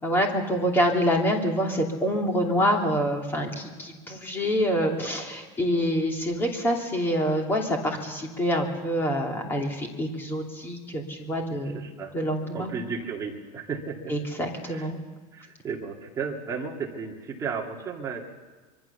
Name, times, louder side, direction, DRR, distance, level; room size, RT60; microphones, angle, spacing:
voice 1, 0.0-11.8 12.1-12.7 14.1-15.0, equal, 10° left, 1 dB, 2.8 m, -26 dB
voice 2, 11.6-12.1 12.5-14.1 14.6-14.9 15.3-18.3, right 5 dB, 20° right, -1 dB, 2.5 m, -34 dB
25.0 x 24.0 x 7.0 m, 1.3 s
cardioid pair, 175°, 18 cm